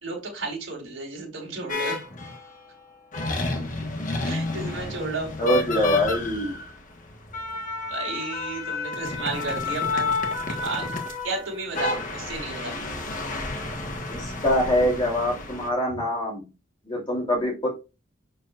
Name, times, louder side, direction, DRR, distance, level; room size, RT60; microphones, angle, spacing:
voice 1, 0.0-2.0 4.2-5.6 7.9-10.1 10.5-10.9 11.2-12.7, right 3 dB, 80° right, 4.2 m, -33 dB
sound 1, 1.7-2.5 3.1-15.7, left 3 dB, 40° left, 1.4 m, -30 dB
voice 2, 5.4-6.6 14.1-16.5 16.8-17.7, left 1 dB, 25° left, 3.1 m, -24 dB
7.1 x 6.4 x 2.5 m
head